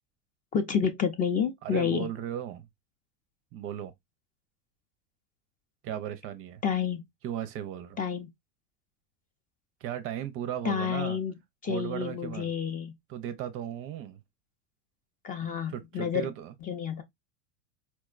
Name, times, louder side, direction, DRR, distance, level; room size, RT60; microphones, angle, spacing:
voice 1, 0.5-2.1 6.6-7.0 8.0-8.3 10.6-11.3 11.6-12.9 15.2-16.3 16.6-17.0, left 7 dB, 25° left, 0.5 m, -29 dB
voice 2, 1.6-2.7 3.5-3.9 5.8-6.6 7.2-8.0 9.8-11.2 11.7-12.5 13.1-14.2 15.7-16.5, right 10 dB, 35° right, 0.5 m, -36 dB
4.3 x 2.1 x 2.3 m
hypercardioid pair, 110°, 37 cm